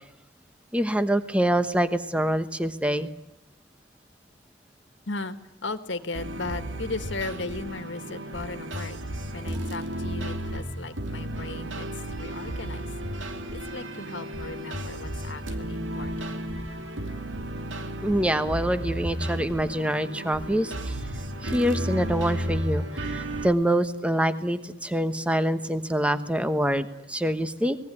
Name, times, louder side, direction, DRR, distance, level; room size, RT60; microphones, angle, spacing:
voice 1, 0.7-3.1 18.0-20.9 21.4-27.8, right 1 dB, 5° right, 10 dB, 1.1 m, -25 dB
voice 2, 5.1-9.0 9.3-12.9 13.5-16.3, left 3 dB, 75° left, 10 dB, 1.8 m, -36 dB
sound 1, 6.1-23.5, right 1 dB, 85° right, 2.3 m, -33 dB
24.5 x 20.0 x 9.9 m, 0.86 s
head